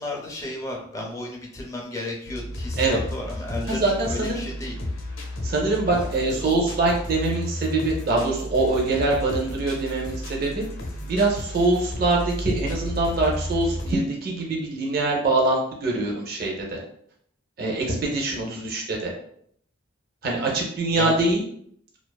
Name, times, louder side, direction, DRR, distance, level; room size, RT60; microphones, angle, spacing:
voice 1, 0.0-4.8 5.8-6.8 18.4-18.7 20.9-21.3, left 2 dB, 15° left, -1 dB, 0.4 m, -34 dB
sound 1, 2.3-13.9, left 1 dB, 90° left, 0.5 m, -33 dB
voice 2, 3.7-4.4 5.4-10.6 11.0-16.8 17.6-19.1 20.2-21.4, right 2 dB, 50° right, -1 dB, 0.5 m, -24 dB
2.4 x 2.3 x 2.2 m, 0.67 s
head